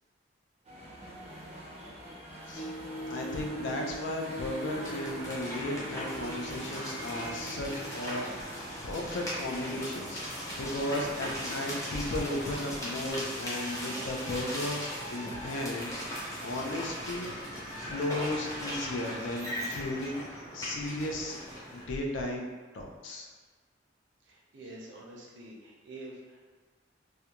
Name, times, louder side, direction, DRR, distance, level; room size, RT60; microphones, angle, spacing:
sound 1, 0.6-13.1, equal, 35° right, 0.4 m, -46 dB
sound 2, 2.5-8.0, right 1 dB, 45° left, 1.0 m, -42 dB
voice 1, 3.1-10.2 10.6-17.3 17.8-21.4 21.7-22.5 22.7-23.3, left 1 dB, 80° left, 1 dB, 0.4 m, -35 dB
sound 3, 4.6-21.8, equal, 20° left, 0.6 m, -38 dB
voice 2, 24.2-26.5, right 1 dB, 85° right, -3 dB, 0.6 m, -47 dB
2.4 x 2.1 x 2.8 m, 1.4 s
head